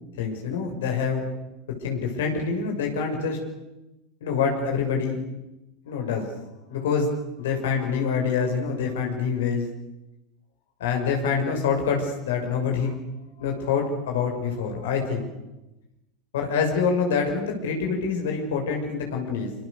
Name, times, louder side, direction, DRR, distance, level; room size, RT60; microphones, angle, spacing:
voice 1, 0.2-1.3 1.8-3.4 4.2-5.2 5.9-6.3 6.7-7.1 7.4-9.7 10.8-13.0 13.4-15.3 16.3-19.5, left 5 dB, 70° left, 2 dB, 6.5 m, -26 dB
27.0 x 26.5 x 6.8 m, 0.98 s
hypercardioid pair, 85°, 0 cm